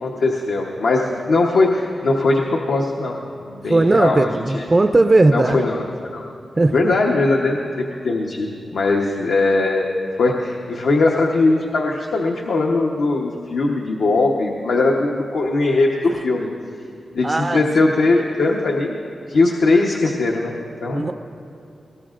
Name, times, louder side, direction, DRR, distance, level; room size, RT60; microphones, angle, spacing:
voice 1, 0.0-3.2 3.5-4.7 5.3-5.8 6.1-6.2 6.7-9.9 10.2-16.5 17.1-19.0 19.3-21.1, left 3 dB, 80° left, -1 dB, 1.0 m, -20 dB
voice 2, 3.7-5.6 6.6-6.9 17.2-17.6 20.9-21.1, right 2 dB, 25° right, 7 dB, 0.4 m, -17 dB
20.5 x 18.5 x 2.5 m, 2.6 s
wide cardioid pair, 105°, 0 cm